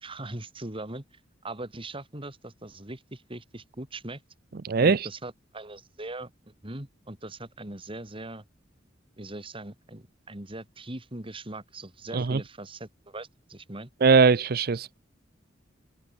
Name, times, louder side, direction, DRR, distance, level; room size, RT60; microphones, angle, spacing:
voice 1, 0.0-1.0 1.4-4.2 4.8-6.3 6.6-8.4 9.2-13.9, right 2 dB, 30° right, 2.9 m, -40 dB
voice 2, 4.6-5.1 12.1-12.4 14.0-15.0, right 5 dB, 55° right, 0.6 m, -21 dB
open air
head